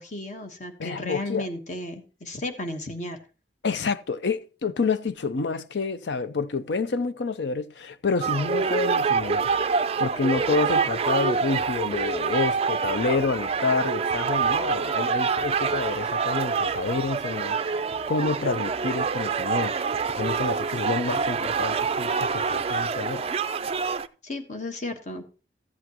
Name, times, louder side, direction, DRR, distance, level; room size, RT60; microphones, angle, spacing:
voice 1, 0.0-3.2 24.2-25.2, left 2 dB, 40° left, 1.3 m, -34 dB
voice 2, 0.8-1.5 3.6-17.8 18.1-19.8 20.2-23.3, left 4 dB, 75° left, 0.6 m, -28 dB
sound 1, 8.2-24.1, right 5 dB, 35° right, 0.4 m, -26 dB
14.0 x 8.2 x 3.0 m
head